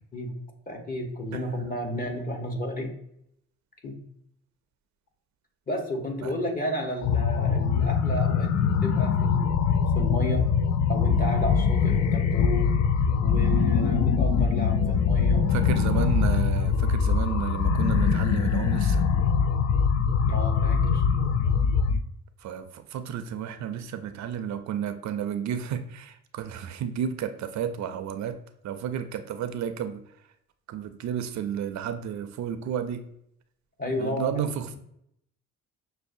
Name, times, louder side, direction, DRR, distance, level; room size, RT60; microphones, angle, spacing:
voice 1, 0.7-2.9 3.8-4.0 5.7-9.6 9.9-10.5 10.9-12.7 13.2-15.4 20.3-21.0 33.8-34.4, left 1 dB, 30° left, 2 dB, 1.0 m, -32 dB
sound 1, 7.0-22.0, left 6 dB, 60° left, 0.4 m, -23 dB
voice 2, 15.5-19.0 22.4-28.4 28.6-30.0 30.7-33.1 34.0-34.8, right 8 dB, 65° right, 9 dB, 0.5 m, -32 dB
6.1 x 2.2 x 2.6 m, 0.75 s
cardioid pair, 90°, 30 cm